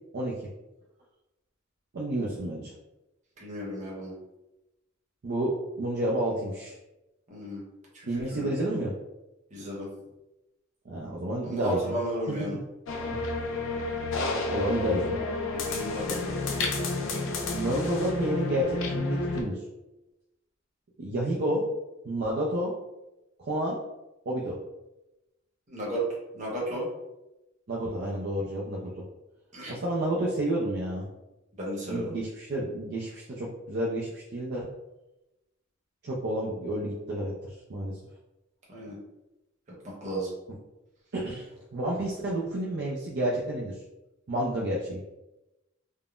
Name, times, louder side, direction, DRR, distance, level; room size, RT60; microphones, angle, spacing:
voice 1, 1.9-2.7 5.2-6.7 8.1-9.0 10.9-12.0 14.5-15.2 17.5-19.6 21.0-21.7 22.0-22.7 23.4-23.8 24.3-24.6 27.7-29.0 29.7-31.1 31.8-34.7 36.0-38.0 41.1-41.5 41.7-43.8 44.3-45.0, right 1 dB, 55° right, -4 dB, 0.4 m, -30 dB
voice 2, 3.4-4.1 7.3-7.6 7.9-8.5 9.5-9.9 11.4-12.5 15.5-16.3 25.7-26.0 26.3-26.8 29.5-29.8 31.6-32.1 38.7-38.9 40.0-40.3, equal, 35° right, -5 dB, 1.0 m, -34 dB
sound 1, 12.9-19.4, left 3 dB, 70° left, 0.5 m, -30 dB
3.6 x 2.0 x 2.4 m, 0.96 s
head